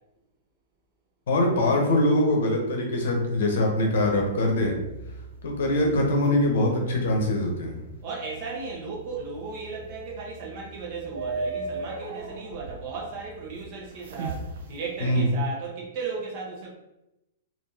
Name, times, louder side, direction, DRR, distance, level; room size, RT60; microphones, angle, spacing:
voice 1, 1.3-4.7 5.4-7.8 15.0-15.2, left 1 dB, 60° left, 1 dB, 0.8 m, -23 dB
sound 1, 3.9-15.2, right 3 dB, 60° right, 0.5 m, -39 dB
voice 2, 8.0-16.7, right 4 dB, 45° right, -2 dB, 1.1 m, -35 dB
3.5 x 2.6 x 2.8 m, 0.92 s
figure-of-eight pair, 105°, 0 cm